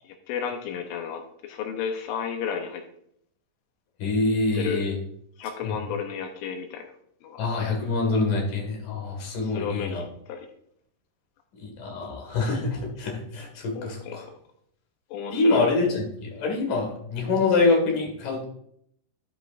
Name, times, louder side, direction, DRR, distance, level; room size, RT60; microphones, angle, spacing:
voice 1, 0.3-1.2 1.5-2.8 4.6-4.8 5.4-6.9 7.2-7.4 9.5-10.4 13.8-14.2 15.1-15.7, left 7 dB, 80° left, 4 dB, 3.3 m, -32 dB
voice 2, 4.0-4.9 5.6-5.8 7.4-10.0 11.5-14.3 15.3-18.4, left 3 dB, 55° left, 1 dB, 2.8 m, -25 dB
12.0 x 7.9 x 2.5 m, 0.70 s
omnidirectional pair, 5.7 m